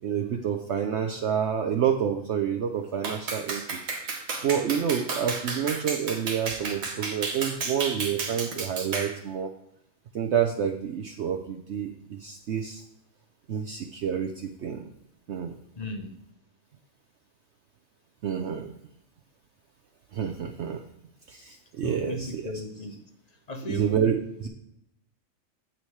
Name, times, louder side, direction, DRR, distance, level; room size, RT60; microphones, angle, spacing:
voice 1, 0.0-3.8 4.4-9.5 10.1-12.8 13.5-14.9 15.3-15.5 18.2-18.7 20.1-20.8 21.3-22.4 23.7-24.5, right 8 dB, 60° right, 4 dB, 0.9 m, -28 dB
Clapping, 3.0-9.2, right 4 dB, 90° right, 1.7 m, -32 dB
voice 2, 15.8-16.2 21.8-23.1 23.5-23.9, left 1 dB, 35° left, 5 dB, 0.8 m, -35 dB
8.9 x 8.2 x 3.2 m, 0.77 s
omnidirectional pair, 1.4 m